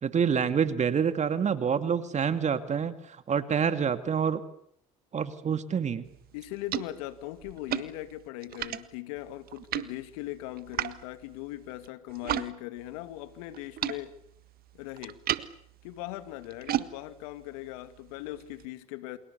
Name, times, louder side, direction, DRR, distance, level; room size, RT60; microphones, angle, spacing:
voice 1, 0.0-4.4 5.1-6.1, right 7 dB, 40° right, 10 dB, 2.4 m, -27 dB
sound 1, 6.0-12.5 12.8-18.7, right 12 dB, 55° right, 1.6 m, -37 dB
voice 2, 6.3-14.1 14.7-15.2 15.8-19.2, left 15 dB, 75° left, 12 dB, 2.3 m, -39 dB
29.5 x 27.5 x 7.0 m, 0.69 s
hypercardioid pair, 65°, 18 cm